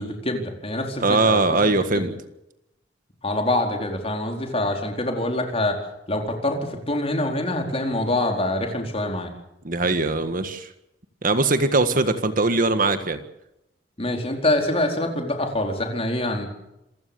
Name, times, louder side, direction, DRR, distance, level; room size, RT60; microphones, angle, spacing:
voice 1, 0.0-2.1 3.2-5.8 6.1-9.3 14.0-16.5, left 1 dB, 35° left, 3 dB, 4.4 m, -25 dB
voice 2, 1.0-2.1 9.6-10.7 11.2-13.2, right 3 dB, 50° right, 9 dB, 1.7 m, -21 dB
27.5 x 15.5 x 7.0 m, 0.86 s
head